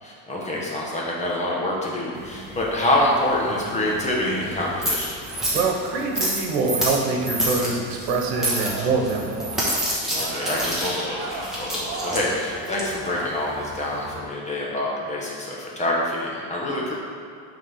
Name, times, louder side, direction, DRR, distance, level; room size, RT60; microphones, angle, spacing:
voice 1, 0.0-5.2 10.1-16.9, left 1 dB, 15° left, -3 dB, 1.0 m, -26 dB
sound 1, 2.1-14.2, right 1 dB, ahead, 1.2 m, -29 dB
voice 2, 5.5-9.5, right 4 dB, 85° right, 2 dB, 1.1 m, -24 dB
sound 2, 6.9-13.3, right 3 dB, 35° right, 0.8 m, -37 dB
6.4 x 3.7 x 5.6 m, 2.4 s
cardioid pair, 155°, 39 cm